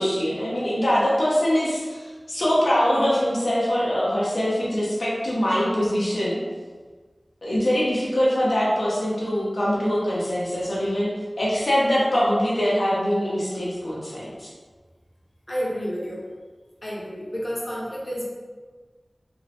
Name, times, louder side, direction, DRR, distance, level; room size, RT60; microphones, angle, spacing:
voice 1, 0.0-6.4 7.4-11.1 11.4-14.5, equal, 90° left, -7 dB, 0.7 m, -23 dB
voice 2, 15.5-16.3 16.8-18.3, equal, 35° left, -6 dB, 0.7 m, -30 dB
3.0 x 2.0 x 2.8 m, 1.4 s
wide cardioid pair, 60°, 0 cm